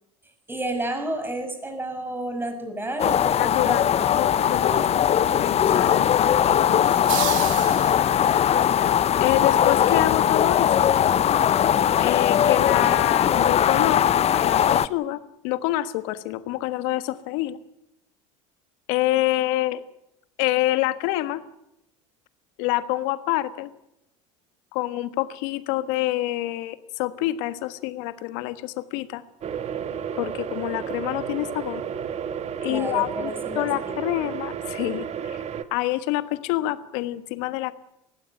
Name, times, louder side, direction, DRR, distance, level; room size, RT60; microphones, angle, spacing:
voice 1, 0.5-3.8 4.1-4.3 4.7-4.8 7.7-8.3 32.7-33.7, right 1 dB, 10° right, 7 dB, 6.3 m, -31 dB
sound 1, 3.0-14.9, left 9 dB, 40° left, 0.8 m, -20 dB
voice 2, 3.4-6.8 9.2-10.7 12.0-14.0 14.3-17.6 18.9-19.8 20.4-21.4 22.6-23.7 24.7-29.2 30.2-31.8 32.6-33.3 33.5-35.4 35.7-37.7, left 16 dB, 65° left, 12 dB, 1.4 m, -27 dB
sound 2, 6.9-8.4, right 17 dB, 75° right, 1.4 m, -32 dB
sound 3, 29.4-35.6, right 8 dB, 40° right, 1.7 m, -32 dB
19.5 x 15.5 x 9.2 m, 0.86 s
hypercardioid pair, 75°, 17 cm